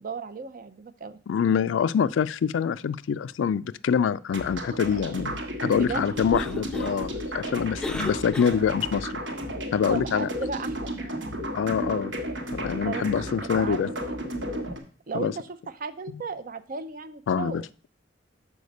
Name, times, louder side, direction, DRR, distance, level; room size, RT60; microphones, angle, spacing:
voice 1, 0.0-1.2 5.7-6.0 9.9-11.3 12.8-13.1 13.4-14.4 15.1-17.7, right 4 dB, 45° right, 13 dB, 0.5 m, -35 dB
voice 2, 1.3-9.2 9.7-10.3 11.5-12.1 12.5-13.9 15.1-15.3 17.3-17.6, left 7 dB, 75° left, 17 dB, 0.3 m, -25 dB
sound 1, 4.3-14.8, equal, 70° right, 1.3 m, -33 dB
Cough, 6.1-9.0, left 1 dB, 5° left, 0.5 m, -38 dB
6.5 x 4.9 x 5.2 m, 0.40 s
head